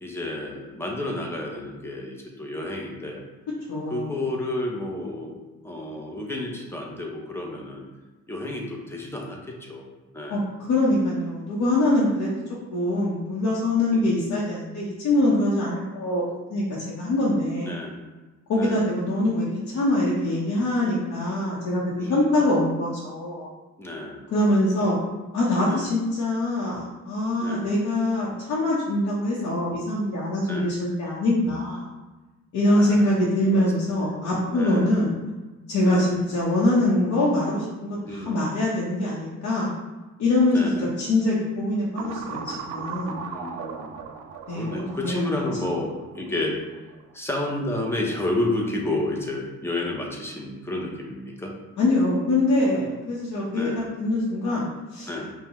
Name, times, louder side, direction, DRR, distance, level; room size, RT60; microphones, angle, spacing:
voice 1, 0.0-3.2 3.9-5.4 5.6-7.8 8.3-9.9 10.1-10.5 13.9-14.2 17.6-17.9 18.6-18.8 22.0-22.4 23.8-24.2 24.8-25.0 25.7-25.9 27.4-27.7 30.4-30.7 32.7-33.1 33.5-33.6 33.9-35.0 35.8-36.2 38.0-38.5 40.5-41.0 43.2-44.0 44.5-46.6 47.1-51.5 53.5-53.8 55.1-55.3, left 1 dB, 10° left, -1 dB, 0.8 m, -31 dB
voice 2, 3.7-4.2 10.3-10.4 10.7-12.3 12.7-16.2 16.5-17.8 18.5-23.5 24.3-25.0 25.3-31.9 32.5-35.2 35.7-39.7 40.2-43.2 44.5-45.2 51.8-55.2, left 1 dB, 75° left, -6 dB, 0.9 m, -24 dB
sound 1, 42.0-47.0, right 6 dB, 85° right, 0.5 m, -37 dB
5.4 x 2.3 x 3.0 m, 1.2 s
cardioid pair, 90°, 30 cm